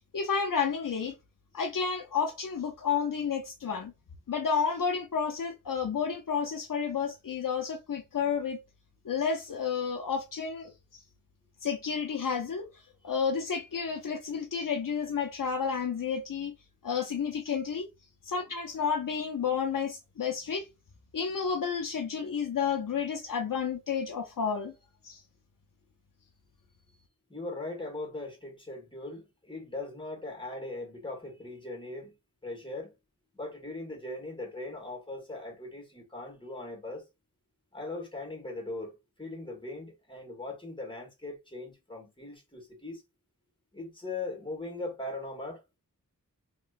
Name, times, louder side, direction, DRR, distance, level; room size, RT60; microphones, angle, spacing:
voice 1, 0.1-1.1 1.5-3.9 4.3-8.6 9.0-10.7 11.6-12.7 13.0-16.5 16.8-17.9 18.3-20.7 21.1-24.7 25.0-25.2, left 6 dB, 75° left, 0.6 m, -31 dB
voice 2, 27.3-32.1 32.4-33.0 33.3-37.1 37.7-43.0 43.7-45.6, left 2 dB, 15° left, 1.5 m, -40 dB
3.0 x 2.9 x 2.4 m
wide cardioid pair, 50°, 33 cm